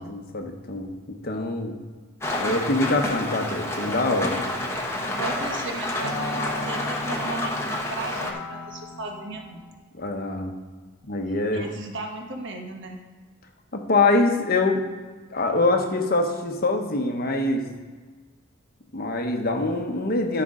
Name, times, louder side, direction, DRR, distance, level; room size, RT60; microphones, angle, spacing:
voice 1, 0.0-1.7 2.3-4.4 10.0-10.5 11.1-11.7 13.7-14.8 15.3-17.6 18.9-20.4, left 2 dB, 45° left, 4 dB, 1.0 m, -24 dB
Rain, 2.2-8.3, left 1 dB, 10° left, 0.9 m, -29 dB
sound 1, 3.9-9.8, left 1 dB, 90° left, 1.0 m, -37 dB
voice 2, 5.1-9.6 11.3-13.0, right 3 dB, 55° right, 2 dB, 1.2 m, -36 dB
13.5 x 5.9 x 3.8 m, 1.4 s
head